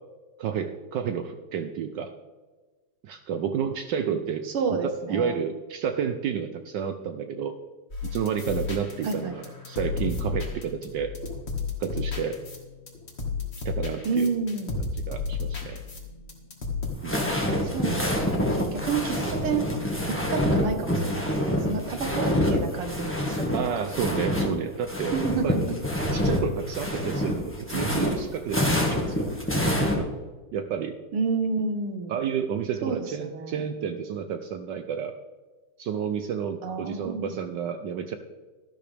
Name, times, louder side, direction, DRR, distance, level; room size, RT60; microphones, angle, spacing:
voice 1, 0.4-2.1 3.0-4.5 4.8-7.6 8.0-11.1 11.8-12.4 13.6-14.3 14.8-15.8 17.0-17.3 23.5-25.7 26.1-29.3 29.6-30.1 30.5-31.0 32.1-35.1 35.8-38.2, right 7 dB, 70° right, 8 dB, 1.1 m, -30 dB
voice 2, 4.5-5.4 9.0-9.3 14.1-14.8 17.6-19.7 20.1-23.9 25.1-25.6 31.1-32.2 32.8-33.7 36.6-37.4, right 4 dB, 85° right, 6 dB, 2.2 m, -30 dB
sound 1, 7.9-16.9, left 4 dB, 30° left, 2.0 m, -33 dB
sound 2, 16.8-24.5 24.8-30.0, left 1 dB, 5° left, 1.3 m, -26 dB
13.0 x 12.0 x 3.4 m, 1.3 s
omnidirectional pair, 2.4 m